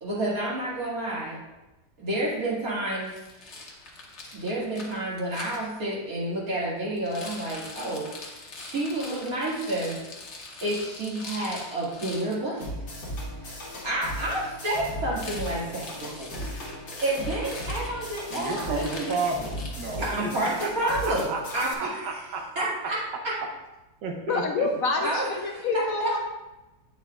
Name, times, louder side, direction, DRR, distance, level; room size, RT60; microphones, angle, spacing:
voice 1, 0.0-1.4 2.0-3.1 4.3-8.1 8.5-10.0 10.6-12.7 13.4-13.6 13.8-16.4 17.0-19.2 20.0-21.3 21.5-22.3 22.6-23.0 23.2-23.3 25.0-26.1, right 1 dB, 55° right, -7 dB, 2.7 m, -30 dB
Rattle, 3.0-5.6 7.0-12.4 15.1-20.1, left 3 dB, 45° left, 1.2 m, -42 dB
sound 1, 12.6-21.7, equal, 90° left, 2.1 m, -37 dB
voice 2, 18.3-20.3 20.6-22.7 24.0-24.7, right 4 dB, 90° right, 2 dB, 1.6 m, -32 dB
voice 3, 24.3-26.2, left 3 dB, 65° left, 2 dB, 0.9 m, -27 dB
8.7 x 7.0 x 2.4 m, 1.0 s
omnidirectional pair, 1.8 m